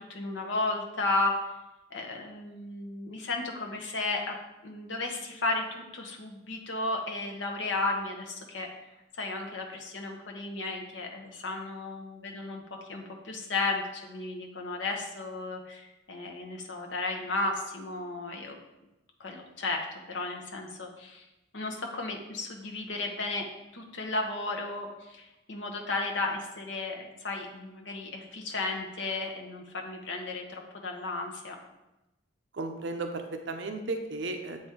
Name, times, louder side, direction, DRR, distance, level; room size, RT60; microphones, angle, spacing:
voice 1, 0.0-1.5 1.9-4.3 4.6-18.6 19.2-21.3 21.5-23.4 23.7-31.5, left 2 dB, 70° left, 1 dB, 1.0 m, -34 dB
voice 2, 32.5-34.6, right 2 dB, 65° right, 5 dB, 0.6 m, -34 dB
7.7 x 4.3 x 3.7 m, 0.96 s
head